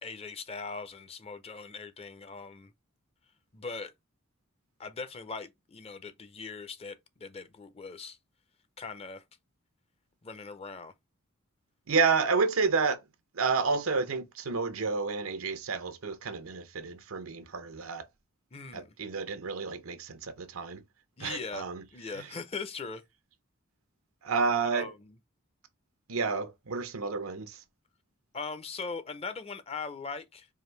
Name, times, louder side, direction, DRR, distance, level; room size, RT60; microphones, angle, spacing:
voice 1, 0.0-2.7 3.5-3.9 4.8-8.2 8.8-9.2 10.2-10.9 18.5-18.9 21.2-23.0 24.6-25.2 28.3-30.5, left 4 dB, 30° left, 0.5 m, -40 dB
voice 2, 11.9-13.0 13.3-18.0 18.7-20.8 21.2-21.8 22.2-22.3 24.2-24.9 26.1-27.6, right 4 dB, 85° right, 0.7 m, -30 dB
4.8 x 2.6 x 3.2 m
head